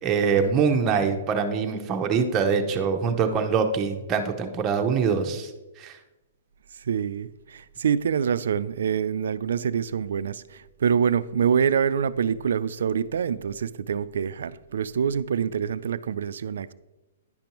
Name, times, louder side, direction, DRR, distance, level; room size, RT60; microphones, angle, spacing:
voice 1, 0.0-5.5 5.8-5.9, right 6 dB, 20° right, 0.7 m, -24 dB
voice 2, 6.9-16.7, right 7 dB, 80° right, 0.3 m, -26 dB
10.0 x 5.2 x 2.9 m
hypercardioid pair, 155°, 0 cm